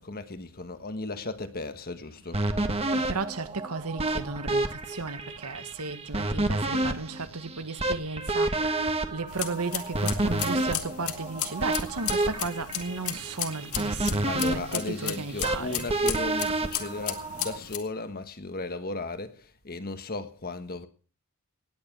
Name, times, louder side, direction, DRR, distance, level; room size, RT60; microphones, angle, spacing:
voice 1, 0.0-2.5 14.2-20.9, left 3 dB, 45° left, 1.5 m, -36 dB
sound 1, 2.3-17.6, right 2 dB, 30° right, 1.4 m, -30 dB
voice 2, 2.9-15.9, right 3 dB, 85° right, 1.5 m, -35 dB
sound 2, 9.3-17.8, left 11 dB, 80° left, 2.2 m, -36 dB
18.5 x 9.6 x 6.1 m
head